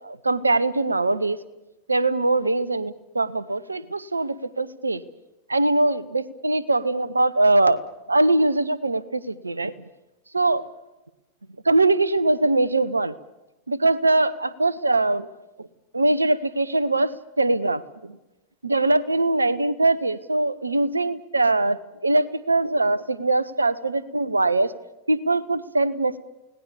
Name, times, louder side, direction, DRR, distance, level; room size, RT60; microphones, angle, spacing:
voice 1, 0.0-1.4 1.9-5.0 5.5-7.8 8.1-9.7 10.3-10.7 11.6-13.1 13.7-15.3 15.6-15.7 15.9-18.2 18.6-24.7 25.1-26.2, right 2 dB, 80° right, 19 dB, 0.9 m, -22 dB
29.0 x 18.0 x 7.0 m, 1.0 s
figure-of-eight pair, 90°, 0 cm